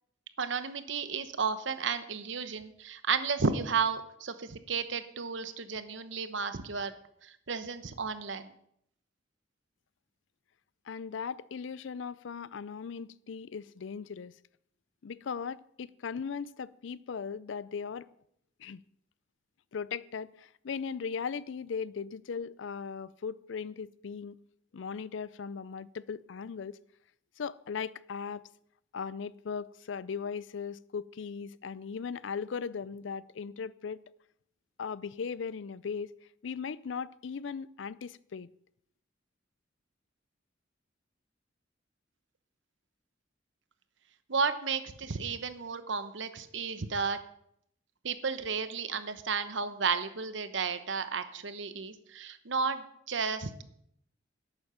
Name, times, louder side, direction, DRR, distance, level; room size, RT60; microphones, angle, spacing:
voice 1, 0.4-6.9 7.2-8.5 44.3-47.2 48.0-53.6, right 5 dB, 70° right, 0.9 m, -33 dB
voice 2, 10.9-14.4 15.0-18.1 18.6-18.8 19.7-24.4 24.7-26.8 27.4-28.4 28.9-34.0 34.8-36.1 36.4-38.5, left 6 dB, 75° left, 0.4 m, -38 dB
11.5 x 8.8 x 5.6 m
head